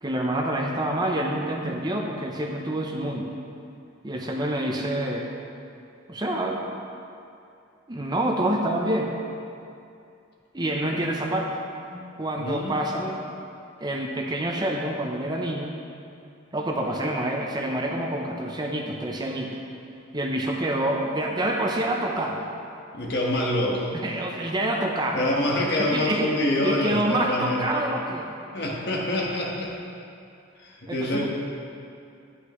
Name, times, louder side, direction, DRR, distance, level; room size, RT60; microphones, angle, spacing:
voice 1, 0.0-3.3 4.0-5.3 6.1-6.6 7.9-9.1 10.5-11.5 11.9-13.2 13.8-15.7 16.5-19.5 20.1-22.4 24.0-25.2 25.8-26.3 26.6-28.3 30.9-31.3, right 1 dB, 20° right, 0 dB, 0.6 m, -27 dB
voice 2, 12.4-12.9 22.9-24.0 25.1-27.8 28.5-29.7 30.6-31.3, left 1 dB, 55° left, -2 dB, 1.3 m, -26 dB
9.6 x 9.2 x 3.1 m, 2.5 s
head